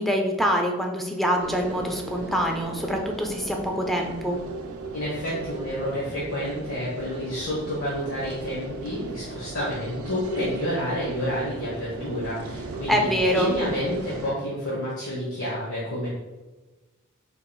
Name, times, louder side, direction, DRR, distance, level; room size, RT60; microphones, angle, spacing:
voice 1, 0.0-4.4 12.9-13.5, equal, ahead, 1 dB, 0.4 m, -25 dB
sound 1, 1.4-14.3, right 3 dB, 75° right, 0.4 m, -38 dB
voice 2, 4.9-13.1 13.3-16.1, equal, 85° left, -8 dB, 1.1 m, -29 dB
4.6 x 2.9 x 2.3 m, 1.2 s
head